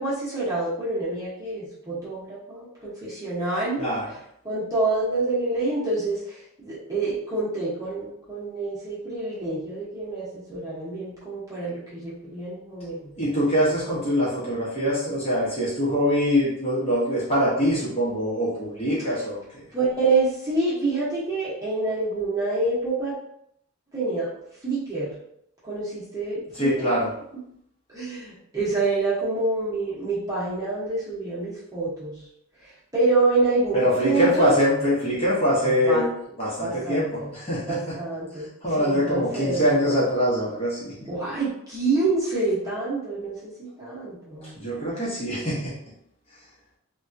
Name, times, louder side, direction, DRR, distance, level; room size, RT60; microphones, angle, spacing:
voice 1, 0.0-3.8 4.4-6.2 6.6-13.1 19.7-23.1 23.9-24.3 24.6-25.1 25.6-26.7 27.9-32.2 32.9-34.5 35.6-36.0 36.6-37.3 37.7-38.5 38.8-39.9 41.1-44.5, right 3 dB, 15° right, -9 dB, 1.0 m, -27 dB
voice 2, 3.8-4.1 13.2-19.6 26.5-27.1 33.7-36.1 36.4-38.0 38.6-41.0 44.4-45.7, equal, 25° left, -7 dB, 0.9 m, -23 dB
3.4 x 2.3 x 2.7 m, 0.73 s
head